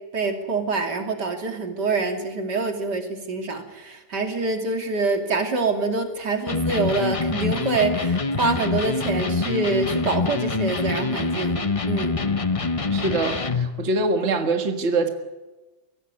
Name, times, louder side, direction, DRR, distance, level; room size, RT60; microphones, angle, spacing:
voice 1, 0.1-12.2, right 3 dB, 75° right, 5 dB, 3.4 m, -26 dB
Electric guitar, 6.5-13.8, left 4 dB, 25° left, 0.8 m, -25 dB
voice 2, 12.9-15.1, right 3 dB, 40° right, 6 dB, 1.9 m, -24 dB
23.0 x 17.5 x 9.7 m, 1.1 s
omnidirectional pair, 1.8 m